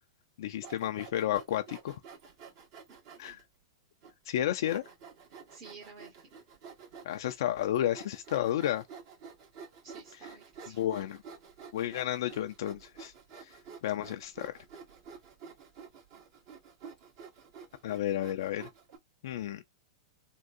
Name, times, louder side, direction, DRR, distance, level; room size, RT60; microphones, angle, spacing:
voice 1, 0.4-2.0 3.2-3.4 4.3-4.8 7.0-8.8 10.7-11.2 11.7-13.1 13.4-14.5 17.8-18.7 19.2-19.6, left 12 dB, 65° left, 0.4 m, -32 dB
Sawing, 0.5-3.4 4.0-4.1 4.6-19.0, right 6 dB, 55° right, 1.6 m, -50 dB
voice 2, 2.9-3.4 5.5-6.4 9.8-10.8, right 4 dB, 35° right, 1.3 m, -52 dB
3.6 x 2.3 x 2.6 m
hypercardioid pair, 110°, 2 cm